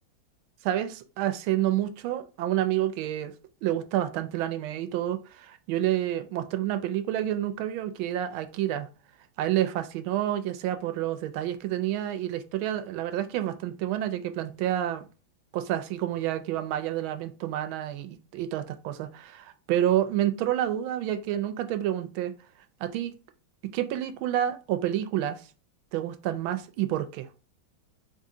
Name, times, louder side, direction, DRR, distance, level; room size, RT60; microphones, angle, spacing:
voice 1, 0.6-3.3 3.6-8.9 9.4-15.1 15.5-22.3 22.8-23.1 23.7-25.4 25.9-27.3, right 12 dB, 85° right, 1.4 m, -29 dB
3.7 x 3.7 x 2.7 m
omnidirectional pair, 2.2 m